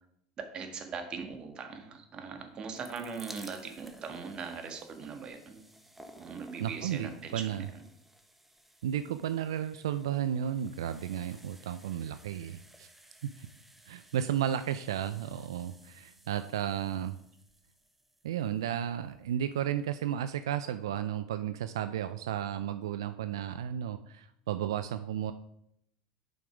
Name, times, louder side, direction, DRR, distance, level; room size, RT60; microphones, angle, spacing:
voice 1, 0.5-5.6 6.2-7.8, right 5 dB, 35° right, 6 dB, 1.4 m, -40 dB
sound 1, 2.5-19.5 20.3-20.4 20.6-20.7, right 1 dB, 5° right, 1.0 m, -56 dB
voice 2, 6.6-7.6 8.8-12.9 13.2-13.5 13.9-17.2 18.2-25.3, right 10 dB, 85° right, 11 dB, 0.3 m, -33 dB
7.7 x 5.3 x 4.8 m, 0.77 s
hypercardioid pair, 95°, 2 cm